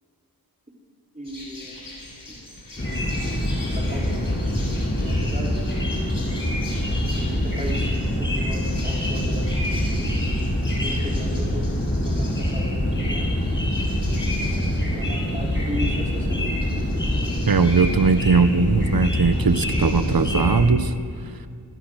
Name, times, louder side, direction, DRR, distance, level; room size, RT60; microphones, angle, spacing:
sound 1, 1.2-20.4, left 2 dB, 60° left, 6.6 m, -43 dB
voice 1, 1.2-1.7 3.6-4.5 5.0-5.6 7.2-7.9 8.2-10.1 10.5-11.7 12.0-13.3 14.9-16.6 17.2-17.3, equal, 20° right, -1 dB, 4.0 m, -36 dB
sound 2, 2.8-20.7, left 1 dB, 30° left, 7.5 m, -24 dB
voice 2, 17.5-20.9, right 4 dB, 65° right, 11 dB, 1.2 m, -19 dB
26.0 x 22.0 x 6.4 m, 2.2 s
wide cardioid pair, 55°, 38 cm